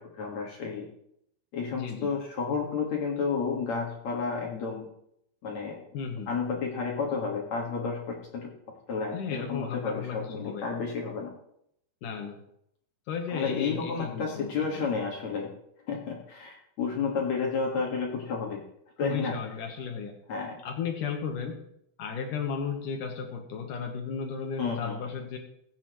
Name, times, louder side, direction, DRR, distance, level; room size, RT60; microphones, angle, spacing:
voice 1, 0.2-0.9 1.5-4.8 5.4-5.8 6.3-8.5 8.9-11.3 13.3-15.5 15.9-18.6 19.0-19.4 20.3-20.6 24.6-25.0, left 5 dB, 55° left, -1 dB, 2.0 m, -31 dB
voice 2, 1.7-2.1 5.9-6.3 9.1-10.7 12.0-12.4 13.1-14.9 19.0-20.1 20.6-21.6 22.0-25.4, left 6 dB, 85° left, 3 dB, 1.8 m, -34 dB
22.0 x 8.3 x 3.1 m, 0.74 s
omnidirectional pair, 5.8 m